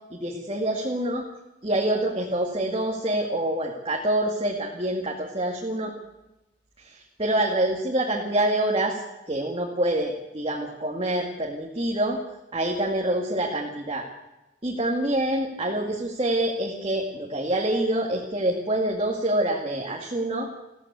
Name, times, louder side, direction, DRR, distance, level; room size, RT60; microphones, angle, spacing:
voice 1, 0.1-1.3 1.6-5.9 6.8-9.0 9.3-12.2 12.5-14.1 14.6-20.5, right 1 dB, 30° right, -1 dB, 2.3 m, -26 dB
21.0 x 15.5 x 8.2 m, 1.0 s
head